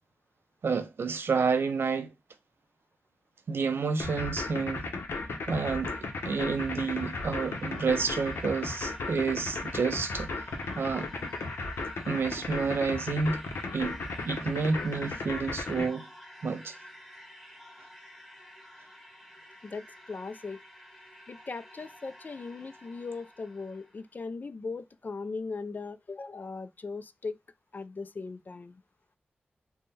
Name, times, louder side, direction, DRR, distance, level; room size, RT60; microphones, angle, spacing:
voice 1, 0.6-2.1 3.5-4.9 5.5-10.3 10.8-11.1 12.1-13.4 13.7-16.1 16.4-16.8, right 5 dB, 75° right, 0.5 m, -29 dB
sound 1, 4.0-15.9, left 3 dB, 85° left, 0.7 m, -35 dB
sound 2, 5.5-24.1, equal, ahead, 1.0 m, -51 dB
voice 2, 19.6-20.6 21.3-27.4 27.7-28.8, left 4 dB, 50° left, 0.3 m, -39 dB
3.5 x 2.1 x 4.0 m
cardioid pair, 60°, 4 cm